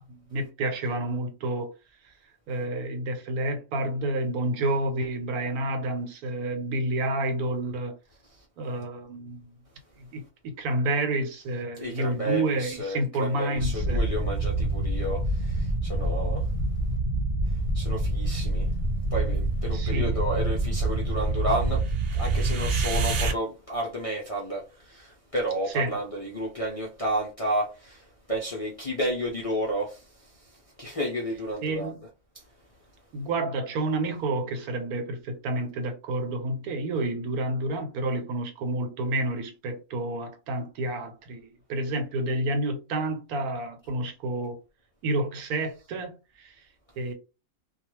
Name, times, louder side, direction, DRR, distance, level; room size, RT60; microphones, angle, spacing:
voice 1, 0.0-1.7 2.5-7.9 8.6-9.6 10.1-14.0 19.7-20.2 25.7-26.0 31.6-31.9 33.1-44.6 45.0-46.5 47.0-47.1, right 2 dB, 85° right, 1.2 m, -29 dB
voice 2, 11.8-16.5 17.7-18.7 19.1-21.8 22.1-30.5 30.8-32.0 32.3-32.4, right 1 dB, 50° left, 0.4 m, -31 dB
sound 1, 13.6-23.3, right 2 dB, 70° right, 0.5 m, -26 dB
2.4 x 2.3 x 3.0 m
omnidirectional pair, 1.5 m